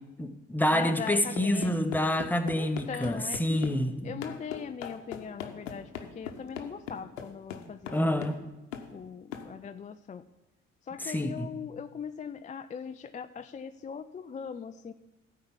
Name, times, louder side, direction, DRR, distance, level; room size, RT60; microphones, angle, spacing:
voice 1, 0.2-4.1 7.9-8.4 11.0-11.5, left 1 dB, 5° left, 1.1 m, -28 dB
voice 2, 0.7-1.8 2.5-3.8 4.0-8.3 8.9-10.2 10.9-14.9, left 6 dB, 20° left, 0.4 m, -40 dB
sound 1, 1.3-3.8 4.2-8.4 8.7-8.9 9.3-9.5, left 8 dB, 85° left, 0.9 m, -40 dB
13.0 x 4.7 x 7.2 m
figure-of-eight pair, 50°, 37 cm